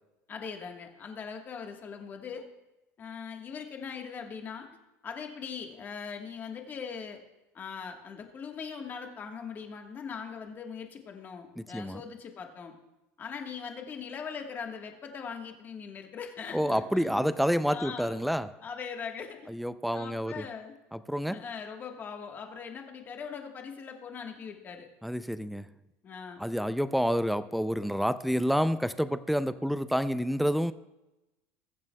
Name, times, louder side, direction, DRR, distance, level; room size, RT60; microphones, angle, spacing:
voice 1, 0.3-2.5 3.0-4.7 5.0-7.2 7.5-12.7 13.2-17.3 17.7-18.2 18.6-19.4 19.9-20.8 21.3-24.9 26.0-26.4, left 6 dB, 30° left, 1.3 m, -41 dB
voice 2, 11.6-12.0 16.5-18.6 19.5-20.4 20.9-21.4 25.0-25.7 26.4-30.7, equal, ahead, 0.3 m, -28 dB
21.0 x 7.5 x 2.2 m
cardioid pair, 140°, 6 cm